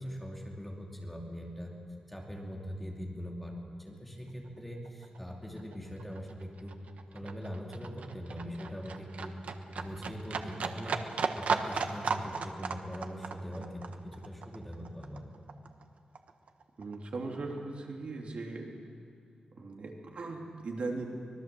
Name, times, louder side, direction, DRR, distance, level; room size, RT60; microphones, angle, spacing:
voice 1, 0.0-1.7 2.1-3.5 3.8-6.7 7.1-9.4 9.8-11.0 11.3-15.2, equal, 5° left, -1 dB, 2.6 m, -41 dB
Livestock farm animals working animals, 4.5-4.6 4.8-15.8 16.2-17.2 17.5-17.6, right 5 dB, 75° right, 1.2 m, -36 dB
voice 2, 16.8-18.7 19.5-21.0, right 3 dB, 55° right, 1 dB, 2.8 m, -38 dB
24.5 x 20.5 x 7.6 m, 2.3 s
wide cardioid pair, 175°, 2 cm